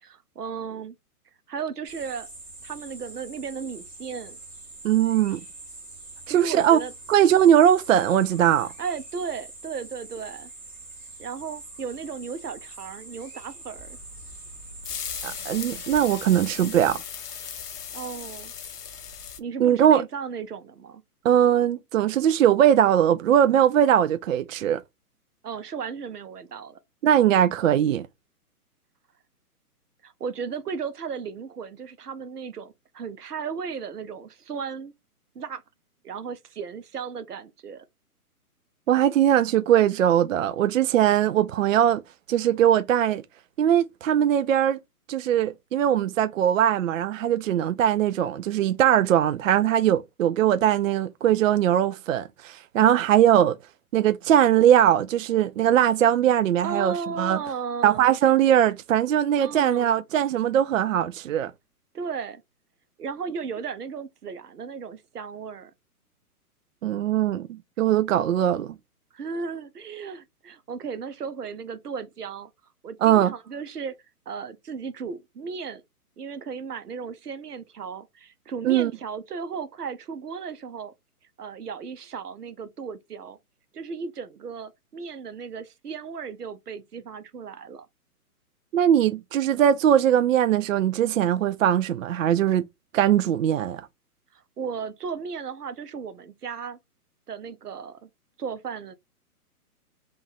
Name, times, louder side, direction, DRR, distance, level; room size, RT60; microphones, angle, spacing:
voice 1, 0.0-0.9 1.5-2.3 2.6-4.4 6.3-6.9 8.8-10.5 11.2-14.0 17.9-18.5 19.4-21.0 25.4-26.8 30.0-34.9 35.3-35.6 36.0-37.8 56.6-58.2 59.4-60.0 61.9-62.4 63.0-65.7 69.1-72.5 72.8-73.9 74.3-75.8 76.2-80.9 81.4-83.4 83.7-87.9 94.3-96.8 97.3-98.1 98.4-98.9, right 6 dB, 85° right, 0.9 m, -35 dB
sound 1, 1.8-16.8, right 2 dB, 5° right, 0.5 m, -44 dB
voice 2, 4.8-5.4 6.3-6.8 7.1-8.7 15.2-17.0 19.6-20.0 21.2-24.8 27.0-28.1 38.9-42.0 42.3-43.2 43.6-44.8 45.1-53.6 53.9-57.4 57.8-61.5 66.8-68.7 73.0-73.3 78.6-78.9 88.7-92.6 92.9-93.9, right 10 dB, 60° right, 0.5 m, -20 dB
sound 2, 13.8-19.4, left 7 dB, 80° left, 0.9 m, -38 dB
3.8 x 2.4 x 3.9 m
hypercardioid pair, 135°, 46 cm